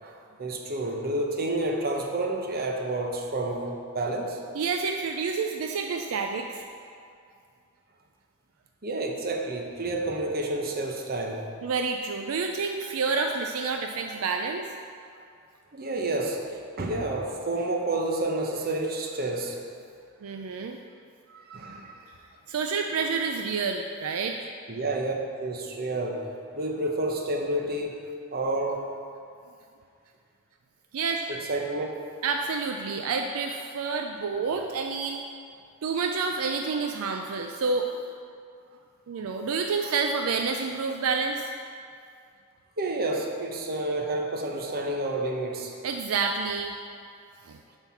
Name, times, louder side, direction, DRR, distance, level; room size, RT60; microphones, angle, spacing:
voice 1, 0.0-4.4 8.8-11.5 15.7-19.6 21.3-22.1 24.7-26.3 26.5-28.0 28.3-28.9 31.3-31.9 39.1-39.2 42.8-45.7, right 2 dB, 45° right, 1 dB, 0.9 m, -30 dB
voice 2, 4.5-6.6 11.6-14.7 20.2-20.8 22.5-24.4 30.9-31.3 32.2-35.2 35.8-37.9 39.1-41.5 45.8-46.7 47.5-47.6, right 4 dB, 75° right, 3 dB, 0.4 m, -29 dB
7.6 x 4.5 x 5.8 m, 2.4 s
head